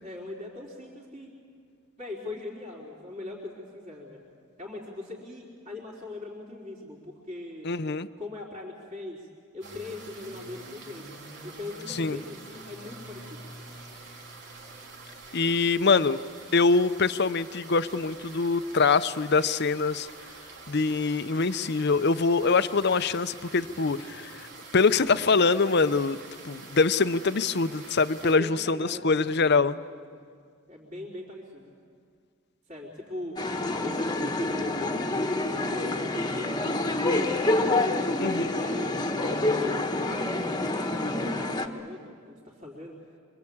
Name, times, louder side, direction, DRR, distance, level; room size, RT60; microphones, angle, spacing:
voice 1, 0.0-1.3 2.0-4.2 4.6-7.7 8.2-9.3 9.5-13.5 28.2-30.2 30.7-31.7 32.7-33.4 33.8-38.1 38.5-43.0, left 2 dB, 35° right, -5 dB, 4.2 m, -41 dB
voice 2, 7.6-8.1 11.9-12.2 15.3-16.2 16.5-20.1 20.7-24.5 24.7-26.2 26.4-29.8 38.2-38.6, left 4 dB, 50° left, 13 dB, 0.7 m, -24 dB
sound 1, 9.6-28.4, right 3 dB, 55° right, 3.6 m, -46 dB
sound 2, 33.4-41.7, left 2 dB, 20° left, 1.3 m, -27 dB
25.5 x 25.0 x 8.7 m, 2.1 s
head